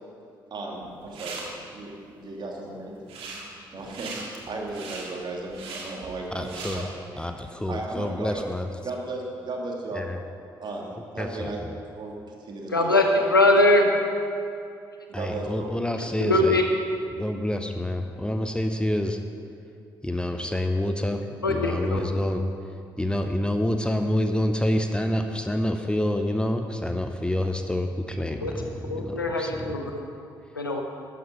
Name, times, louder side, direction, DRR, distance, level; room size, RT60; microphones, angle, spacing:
voice 1, 0.5-1.5 1.7-7.2 7.7-8.4 8.8-10.1 10.6-11.6 11.9-13.2 15.1-15.7, right 2 dB, 40° right, -1 dB, 2.4 m, -35 dB
sound 1, 0.8-1.4 3.0-3.4 3.8-6.8, right 4 dB, 60° right, 2.0 m, -39 dB
voice 2, 6.3-6.8 7.2-8.7 9.9-10.2 11.2-11.7 15.1-16.6 17.1-19.2 20.0-22.4 23.0-29.7, left 1 dB, 10° left, 6 dB, 0.8 m, -27 dB
voice 3, 12.7-13.0 13.3-13.9 15.4-15.5 15.9-16.6 21.4-22.0 28.4-28.5 28.9-29.9 30.5-30.8, left 2 dB, 90° left, 2 dB, 0.8 m, -22 dB
12.5 x 9.6 x 5.7 m, 2.5 s
figure-of-eight pair, 40°, 11 cm